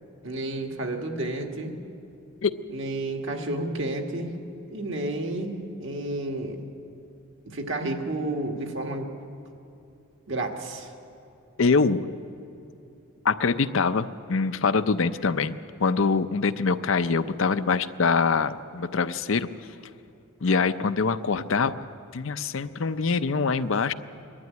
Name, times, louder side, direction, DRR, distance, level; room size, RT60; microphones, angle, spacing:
voice 1, 0.2-1.7 2.7-4.3 4.7-6.6 7.5-9.1 10.3-10.9, right 2 dB, 60° right, 3 dB, 1.9 m, -31 dB
voice 2, 11.6-12.0 13.2-19.5 20.4-21.8 22.1-23.9, left 4 dB, 65° left, 11 dB, 0.6 m, -24 dB
22.0 x 12.5 x 9.4 m, 2.8 s
head